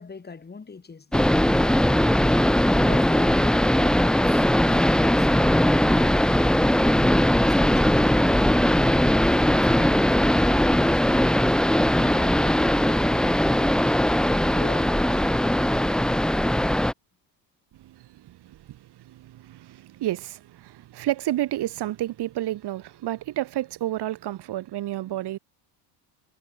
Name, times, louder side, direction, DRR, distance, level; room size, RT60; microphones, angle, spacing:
voice 1, 0.0-1.4 2.7-5.6 14.5-15.3, left 4 dB, 20° left, 2.8 m, -42 dB
sound 1, 1.1-16.9, left 1 dB, ahead, 0.7 m, -20 dB
voice 2, 17.8-25.4, right 14 dB, 55° right, 2.1 m, -31 dB
supercardioid pair, 90°, 48 cm